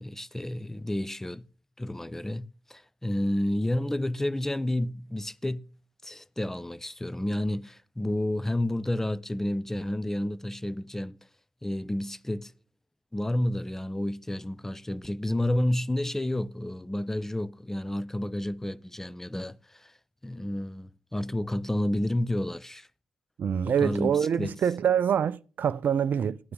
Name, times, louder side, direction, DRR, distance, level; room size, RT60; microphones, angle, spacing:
voice 1, 0.0-1.4 1.8-5.6 6.0-11.2 11.6-12.5 13.1-19.9 20.2-22.9 23.6-24.5, left 1 dB, 10° left, 0.6 m, -30 dB
voice 2, 23.4-26.4, right 8 dB, 50° right, 0.5 m, -25 dB
14.5 x 9.4 x 3.7 m
hypercardioid pair, 40°, 4 cm